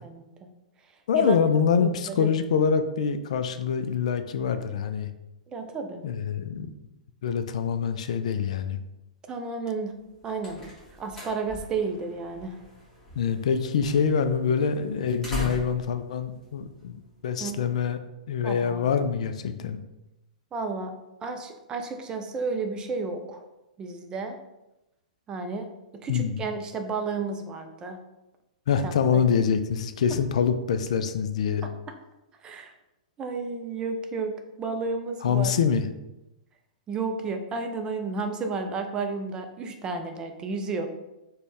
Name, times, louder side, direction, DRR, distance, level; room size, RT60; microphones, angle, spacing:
voice 1, 1.1-5.1 6.0-6.7 7.2-8.8 13.1-18.0 18.3-19.8 26.1-26.4 28.7-31.7 35.2-35.9, left 6 dB, 55° left, 9 dB, 0.3 m, -25 dB
voice 2, 1.8-2.3 5.5-6.0 9.3-9.9 10.2-10.7 11.0-12.6 17.4-17.6 18.4-18.8 20.5-20.9 21.2-23.4 23.8-24.4 25.3-25.7 26.0-28.0 28.8-28.9 31.6-31.7 32.4-32.7 33.2-35.5 36.9-40.9, right 4 dB, 20° right, 5 dB, 0.4 m, -32 dB
sound 1, 9.9-17.4, equal, 10° left, 1.4 m, -42 dB
4.0 x 2.2 x 3.2 m, 0.94 s
figure-of-eight pair, 110°, 4 cm